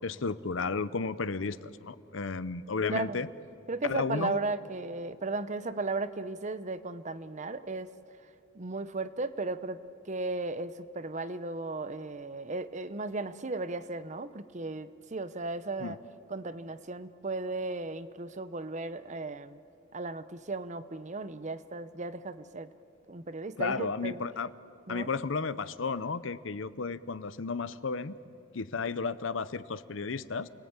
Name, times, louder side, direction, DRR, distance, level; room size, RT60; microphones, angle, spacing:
voice 1, 0.0-3.3 3.8-4.4 15.8-16.0 23.6-24.5 24.9-28.2 28.5-30.5, left 4 dB, 70° left, 15 dB, 0.7 m, -33 dB
voice 2, 2.9-3.2 3.7-7.9 8.5-16.0 16.3-19.6 19.9-22.7 23.1-24.2 24.9-25.1, right 3 dB, 35° right, 13 dB, 0.8 m, -36 dB
29.5 x 19.5 x 8.9 m, 2.6 s
head